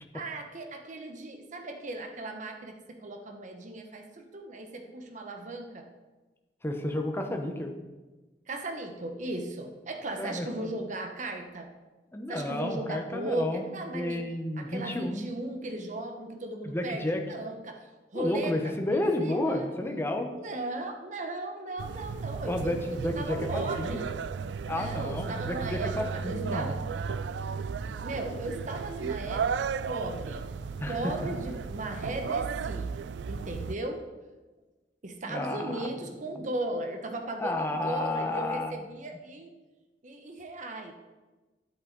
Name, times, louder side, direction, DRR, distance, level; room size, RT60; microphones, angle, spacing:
voice 1, 0.1-5.8 8.5-11.7 12.3-14.3 14.6-19.7 20.3-24.1 24.7-25.9 26.2-26.8 28.0-30.4 30.9-32.9 33.3-34.0 35.0-39.5 40.0-40.9, right 2 dB, 45° right, 4 dB, 1.1 m, -37 dB
voice 2, 6.6-7.7 10.2-10.7 12.1-13.7 13.9-15.2 16.6-17.2 18.1-20.3 22.4-24.1 24.7-26.7 30.8-31.1 35.3-35.9 37.4-38.8, left 1 dB, 15° left, 3 dB, 1.0 m, -31 dB
sound 1, 21.8-33.7, right 5 dB, 85° right, 0.4 m, -34 dB
10.5 x 8.4 x 4.0 m, 1.2 s
head